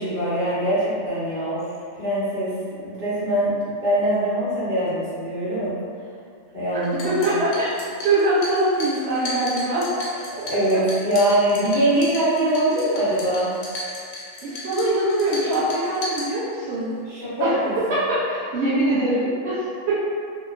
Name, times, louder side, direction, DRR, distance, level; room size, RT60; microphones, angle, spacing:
voice 1, 0.0-1.7 1.9-2.5 2.8-5.7 6.5-7.4 10.3-13.5 17.1-18.0, right 1 dB, 40° right, -12 dB, 1.1 m, -23 dB
voice 2, 6.7-7.7 8.0-9.9 14.4-17.0 17.4-20.0, right 1 dB, 65° right, -11 dB, 0.8 m, -23 dB
sound 1, 6.8-16.8, left 1 dB, 85° left, 1.0 m, -36 dB
2.8 x 2.1 x 2.4 m, 2.3 s
omnidirectional pair, 1.4 m